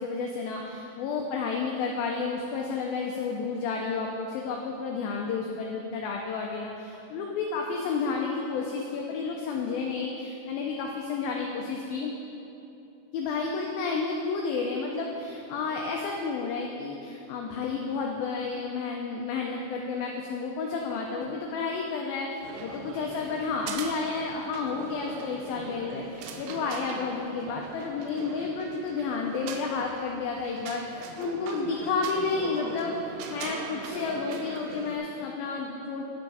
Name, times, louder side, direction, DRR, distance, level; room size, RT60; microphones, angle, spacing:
voice 1, 0.0-12.1 13.1-36.1, left 4 dB, 85° left, 0 dB, 2.1 m, -31 dB
sound 1, 22.4-35.0, right 5 dB, 85° right, 2.9 m, -41 dB
10.5 x 6.9 x 4.8 m, 2.8 s
omnidirectional pair, 4.9 m